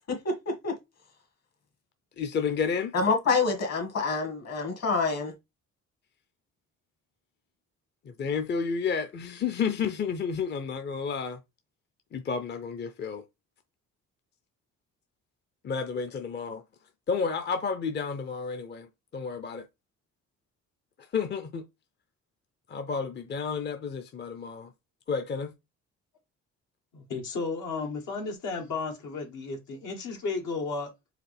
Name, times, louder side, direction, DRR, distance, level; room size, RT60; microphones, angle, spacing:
voice 1, 0.1-0.8 2.9-5.3, left 4 dB, 55° left, 1.8 m, -27 dB
voice 2, 2.2-2.9 8.0-11.4 12.1-13.2 15.6-16.6 17.1-19.7 21.1-21.6 22.7-24.7 25.1-25.5, left 5 dB, 35° left, 0.6 m, -31 dB
voice 3, 26.9-30.9, left 4 dB, 80° left, 1.4 m, -33 dB
4.8 x 3.3 x 3.4 m
cardioid pair, 90°, 30 cm